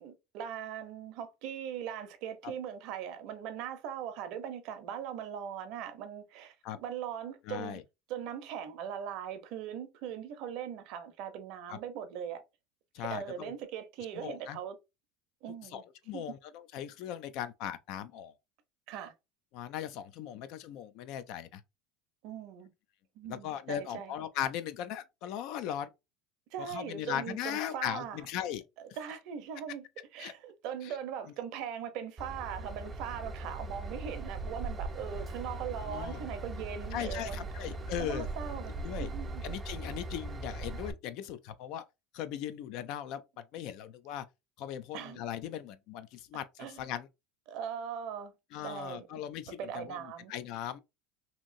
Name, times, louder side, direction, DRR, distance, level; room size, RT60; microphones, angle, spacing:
voice 1, 0.0-7.8 8.1-12.4 13.0-14.7 15.4-15.8 16.1-16.2 18.9-19.1 22.2-22.7 23.2-24.1 26.5-28.3 28.8-29.8 30.1-37.5 38.0-39.4 44.9-45.2 46.6-46.8 47.5-48.3 48.6-49.1 49.6-50.3, right 8 dB, 60° right, 0.6 m, -40 dB
voice 2, 7.5-7.8 11.7-11.8 12.9-13.5 14.2-14.6 15.6-18.3 19.5-21.6 23.3-25.9 26.7-28.6 30.2-30.3 30.8-30.9 35.9-36.2 36.9-38.3 38.8-39.1 39.4-41.8 42.1-44.2 44.6-47.1 48.5-50.8, left 10 dB, 60° left, 0.4 m, -38 dB
Train / Engine, 32.2-40.9, right 2 dB, 20° right, 0.4 m, -39 dB
2.9 x 2.6 x 2.5 m
supercardioid pair, 130°, 0 cm